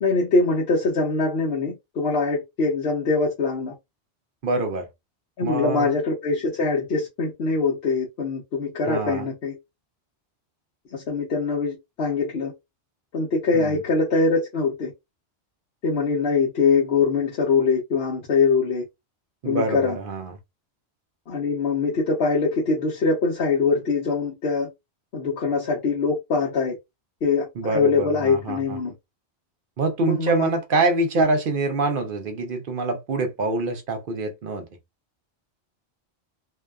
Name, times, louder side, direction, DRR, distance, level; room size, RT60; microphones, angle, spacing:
voice 1, 0.0-3.7 5.4-9.5 10.9-12.5 13.1-14.9 15.8-18.8 19.4-20.0 21.3-24.7 25.1-26.8 27.2-28.9 30.0-30.5 31.2-31.3, left 4 dB, 65° left, 0.9 m, -23 dB
voice 2, 4.4-4.9 5.4-5.9 8.9-9.3 13.5-13.8 19.4-20.3 27.6-28.8 29.8-34.7, right 3 dB, 55° right, 0.7 m, -25 dB
2.6 x 2.3 x 2.2 m
omnidirectional pair, 1.1 m